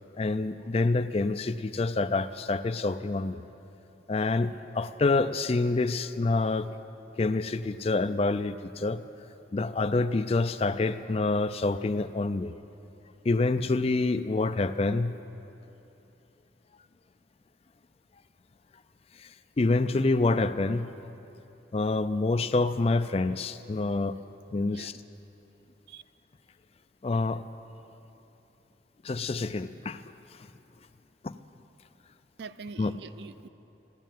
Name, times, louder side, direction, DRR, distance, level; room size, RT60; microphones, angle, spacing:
voice 1, 0.2-3.4 4.1-6.7 7.2-9.0 9.5-12.6 13.2-15.2 19.2-19.3 19.6-20.9 21.7-24.1 24.5-25.0 27.0-27.4 29.0-30.0 31.2-31.4 32.8-32.9, left 3 dB, 35° left, 12 dB, 0.4 m, -27 dB
voice 2, 24.6-24.9 25.9-26.0 32.4-33.5, right 4 dB, 65° right, 13 dB, 0.5 m, -44 dB
14.5 x 10.5 x 9.1 m, 2.9 s
head